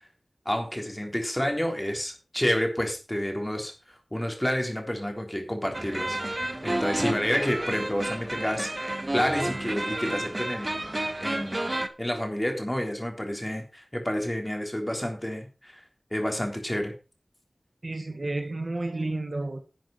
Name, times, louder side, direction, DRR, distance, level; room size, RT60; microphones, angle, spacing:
voice 1, 0.5-10.8 11.2-15.8 16.1-16.9, equal, 15° left, 3.6 m, -30 dB
sound 1, 5.7-11.9, right 1 dB, 35° right, 1.5 m, -31 dB
voice 2, 17.8-19.6, right 2 dB, 60° right, 2.0 m, -31 dB
11.5 x 7.7 x 4.9 m
wide cardioid pair, 60°, 0 cm